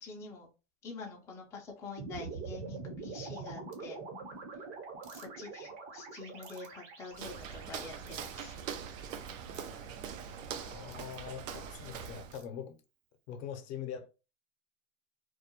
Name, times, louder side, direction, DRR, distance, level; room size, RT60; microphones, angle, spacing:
voice 1, 0.0-0.5 0.8-4.0 5.1-8.6, left 4 dB, 10° left, 0.3 m, -46 dB
sound 1, 2.0-10.3, right 4 dB, 65° right, 1.0 m, -45 dB
sound 2, 3.7-3.8 5.0-5.3 6.4-6.7 8.1-8.4 9.5-9.7 10.9-11.0 12.3-12.5, right 5 dB, 40° right, 0.7 m, -55 dB
Walk footsteps, 7.1-12.4, right 7 dB, 80° right, 0.5 m, -43 dB
voice 2, 10.6-12.8 13.3-14.1, left 8 dB, 60° left, 0.6 m, -43 dB
2.3 x 2.0 x 2.8 m
supercardioid pair, 120°, 38 cm